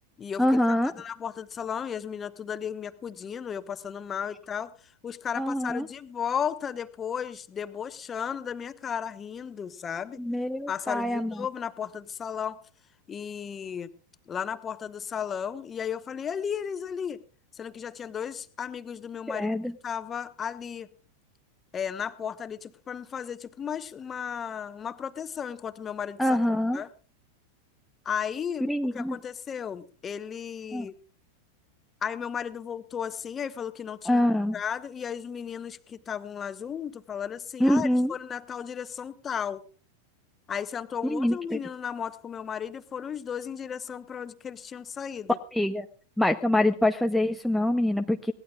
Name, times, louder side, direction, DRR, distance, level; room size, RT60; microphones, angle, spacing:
voice 1, 0.4-0.9 5.4-5.9 10.2-11.5 19.3-19.7 26.2-26.8 28.6-29.2 30.7-30.9 34.1-34.6 37.6-38.1 41.0-41.6 45.5-45.9 46.2-48.3, left 1 dB, ahead, 5 dB, 0.7 m, -25 dB
voice 2, 1.0-4.7 5.0-10.2 10.7-12.6 13.1-13.9 14.3-17.2 17.5-19.6 19.8-20.9 21.7-26.2 26.7-26.9 28.0-30.9 32.0-34.2 34.5-39.6 40.5-45.4, left 8 dB, 20° left, 12 dB, 1.1 m, -34 dB
22.0 x 18.0 x 2.4 m, 0.38 s
figure-of-eight pair, 90°, 0 cm